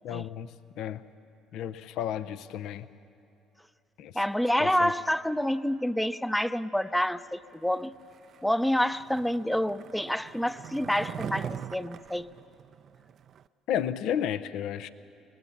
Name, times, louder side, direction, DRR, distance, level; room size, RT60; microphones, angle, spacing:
voice 1, 0.0-0.5 0.8-1.0 1.5-2.9 4.0-4.1 4.6-4.9 13.7-14.9, left 9 dB, 70° left, 13 dB, 0.6 m, -32 dB
voice 2, 4.1-7.9 8.4-12.3, equal, 5° left, 12 dB, 0.6 m, -28 dB
Skateboard, 8.0-13.4, right 9 dB, 55° right, 0.5 m, -42 dB
23.5 x 19.0 x 7.2 m, 2.7 s
hypercardioid pair, 65°, 0 cm